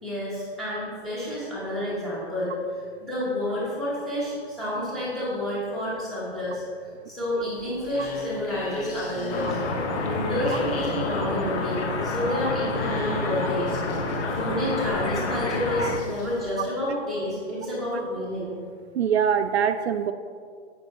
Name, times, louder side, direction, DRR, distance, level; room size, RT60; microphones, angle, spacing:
voice 1, 0.0-9.6 10.0-13.8 14.0-18.5, left 1 dB, ahead, -10 dB, 0.9 m, -29 dB
sound 1, 7.4-16.5, left 3 dB, 55° left, 1.4 m, -38 dB
sound 2, 9.3-16.0, left 3 dB, 75° left, 1.2 m, -29 dB
voice 2, 19.0-20.1, right 8 dB, 70° right, 8 dB, 0.5 m, -23 dB
8.5 x 5.6 x 4.1 m, 2.1 s
hypercardioid pair, 175°, 34 cm